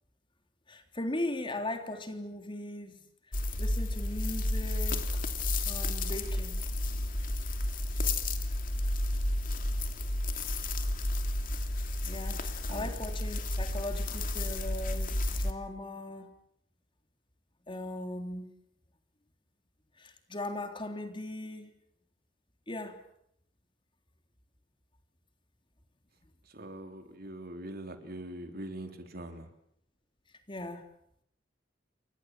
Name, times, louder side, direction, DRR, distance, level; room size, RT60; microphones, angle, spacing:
voice 1, 0.7-3.0 3.3-5.2 5.6-6.6 12.0-16.3 17.7-18.5 20.0-21.7 22.7-23.0 30.5-30.9, left 1 dB, 30° left, 6 dB, 3.5 m, -39 dB
sound 1, 3.3-15.5, left 1 dB, 50° left, 2.9 m, -32 dB
voice 2, 12.7-13.0 26.4-29.5, right 1 dB, 55° right, 6 dB, 3.6 m, -43 dB
29.5 x 24.0 x 7.6 m, 0.70 s
head